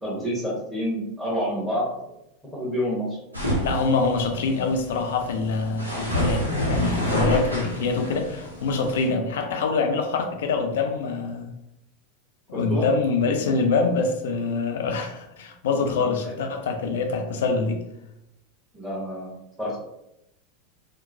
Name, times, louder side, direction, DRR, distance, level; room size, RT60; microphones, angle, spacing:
voice 1, 0.0-2.1 2.5-3.2 12.5-12.9 15.0-15.1 15.9-16.4 18.7-19.3 19.6-19.8, equal, 5° right, -8 dB, 1.0 m, -29 dB
sound 1, 3.3-9.1, equal, 90° right, 0.6 m, -28 dB
voice 2, 3.6-11.5 12.5-17.8, left 4 dB, 65° left, 4 dB, 0.4 m, -25 dB
2.9 x 2.1 x 2.6 m, 0.83 s
figure-of-eight pair, 85°, 0 cm